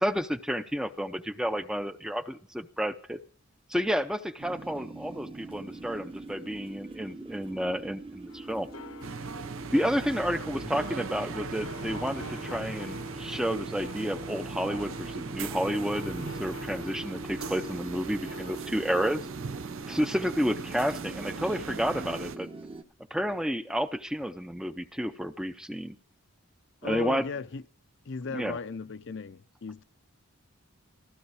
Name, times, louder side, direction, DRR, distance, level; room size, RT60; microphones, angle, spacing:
voice 1, 0.0-3.2 3.7-8.7 9.7-19.2 19.9-22.5 23.1-26.0 26.8-27.2 28.3-28.6, equal, 5° right, 0.5 m, -30 dB
sound 1, 4.4-22.8, right 3 dB, 25° right, 0.9 m, -43 dB
sound 2, 8.3-18.6, left 4 dB, 75° left, 1.0 m, -48 dB
sound 3, 9.0-22.4, right 5 dB, 70° right, 0.7 m, -40 dB
voice 2, 26.8-27.6 28.1-29.8, left 4 dB, 55° left, 0.6 m, -36 dB
15.5 x 13.0 x 4.8 m
head